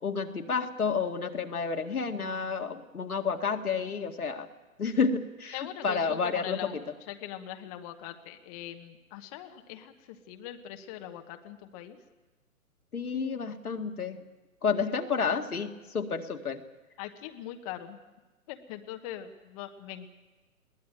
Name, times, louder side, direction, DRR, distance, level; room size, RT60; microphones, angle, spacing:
voice 1, 0.0-4.5 4.8-6.8 12.9-14.2 14.6-16.6, left 5 dB, 80° left, 4 dB, 2.1 m, -30 dB
voice 2, 5.5-6.8 7.1-12.0 14.9-15.2 17.0-18.0 18.5-20.1, left 12 dB, 25° left, 7 dB, 1.1 m, -41 dB
21.5 x 17.5 x 9.0 m, 1.2 s
figure-of-eight pair, 130°, 44 cm